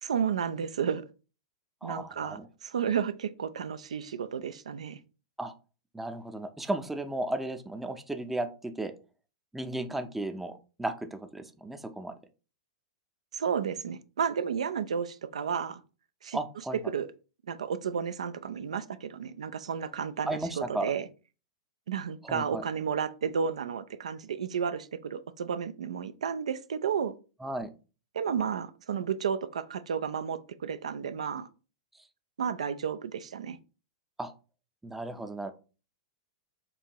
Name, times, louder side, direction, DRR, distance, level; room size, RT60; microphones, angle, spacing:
voice 1, 0.0-1.0 1.8-5.0 13.3-15.8 16.2-16.4 16.9-17.1 17.5-21.1 21.9-27.1 28.1-31.5 32.4-33.6, right 7 dB, 80° right, 12 dB, 0.3 m, -32 dB
voice 2, 1.8-2.5 5.4-5.5 5.9-8.9 9.5-12.2 16.3-16.8 20.3-20.9 22.2-22.6 27.4-27.7 34.2-34.3 34.8-35.5, right 2 dB, 5° right, 7 dB, 0.5 m, -34 dB
4.6 x 2.5 x 2.9 m, 0.34 s
hypercardioid pair, 110°, 3 cm